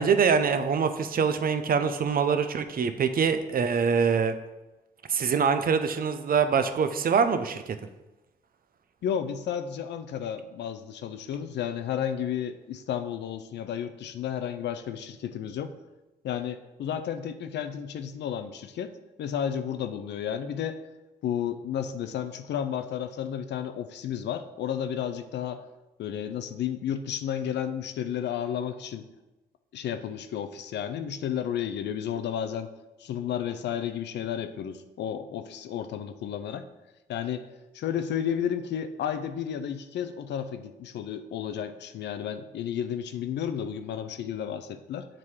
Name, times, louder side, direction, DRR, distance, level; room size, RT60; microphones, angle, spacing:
voice 1, 0.0-4.3 5.1-7.8, right 6 dB, 55° right, 9 dB, 0.6 m, -24 dB
voice 2, 9.0-15.7 16.2-18.9 19.2-20.8 21.2-25.6 26.0-29.1 29.7-32.7 33.0-36.7 37.1-37.5 37.7-45.1, left 9 dB, 80° left, 10 dB, 0.5 m, -32 dB
7.4 x 2.8 x 4.7 m, 1.0 s
cardioid pair, 65°, 18 cm